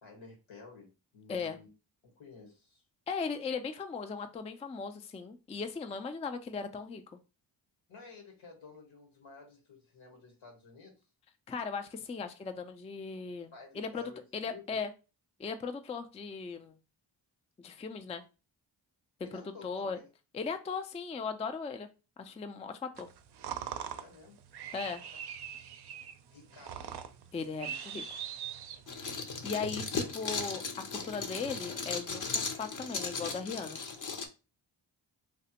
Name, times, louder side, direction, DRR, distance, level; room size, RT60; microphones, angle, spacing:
voice 1, 0.0-1.7 2.0-2.8 7.9-11.1 13.5-14.8 19.2-20.1 24.0-24.4 26.3-27.0 29.7-29.8, left 4 dB, 80° left, 1 dB, 1.4 m, -53 dB
voice 2, 3.1-7.0 11.5-14.9 15.4-16.8 17.6-18.2 19.3-20.0 20.3-21.9 22.2-23.1 24.7-25.0 27.3-28.2 29.4-30.6 30.9-33.8, left 5 dB, 15° left, 8 dB, 0.3 m, -38 dB
sound 1, 23.0-29.2, right 8 dB, 60° right, 0.5 m, -42 dB
sound 2, 28.9-34.3, left 4 dB, 45° left, 0.6 m, -37 dB
3.2 x 2.0 x 2.8 m, 0.30 s
cardioid pair, 50°, 46 cm